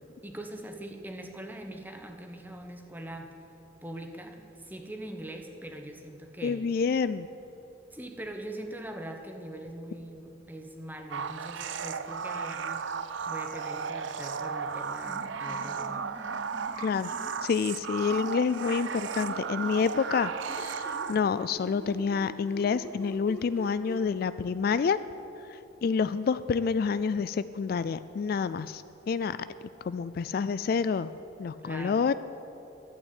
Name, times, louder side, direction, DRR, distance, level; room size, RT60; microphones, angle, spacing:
voice 1, 0.2-3.3 3.8-6.6 7.9-13.0 13.3-16.1 31.6-32.1, right 1 dB, 10° right, 4 dB, 1.1 m, -42 dB
voice 2, 6.4-7.3 16.8-17.1 17.4-25.0 25.5-29.4 29.8-31.1 31.4-32.1, left 5 dB, 50° left, 14 dB, 0.3 m, -28 dB
sound 1, 11.1-21.5, right 6 dB, 75° right, 0.6 m, -35 dB
sound 2, 15.0-17.3 18.1-20.1 20.4-24.0, equal, 10° left, 1.6 m, -44 dB
12.0 x 9.2 x 9.2 m, 2.9 s
head